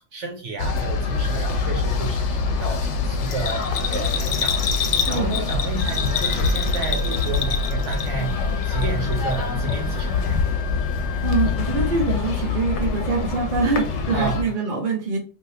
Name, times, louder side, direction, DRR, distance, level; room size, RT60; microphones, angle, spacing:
voice 1, 0.1-4.6 5.1-8.4 8.7-10.4 14.1-14.6, right 3 dB, 80° right, 1 dB, 1.1 m, -31 dB
sound 1, 0.6-14.4, left 4 dB, 80° left, 0.9 m, -25 dB
Bell, 3.3-8.3 8.6-9.4 9.7-9.8, left 7 dB, 60° left, 0.4 m, -27 dB
voice 2, 5.1-5.4 11.2-15.2, right 4 dB, 50° right, 1 dB, 0.8 m, -24 dB
Wind instrument woodwind instrument, 5.8-12.0, left 6 dB, ahead, 1.1 m, -40 dB
3.4 x 2.6 x 2.7 m, 0.37 s
omnidirectional pair, 1.2 m